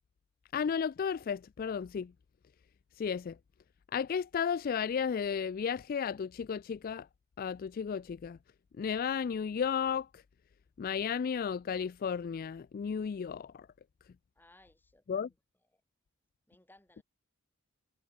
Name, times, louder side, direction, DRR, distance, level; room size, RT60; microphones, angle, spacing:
voice 1, 0.5-2.1 3.0-3.4 3.9-7.1 7.4-8.4 8.8-10.2 10.8-13.7 15.1-15.3, left 7 dB, 40° left, 0.3 m, -33 dB
voice 2, 14.4-15.3 15.7-15.8 16.5-17.0, left 2 dB, 10° left, 1.9 m, -62 dB
head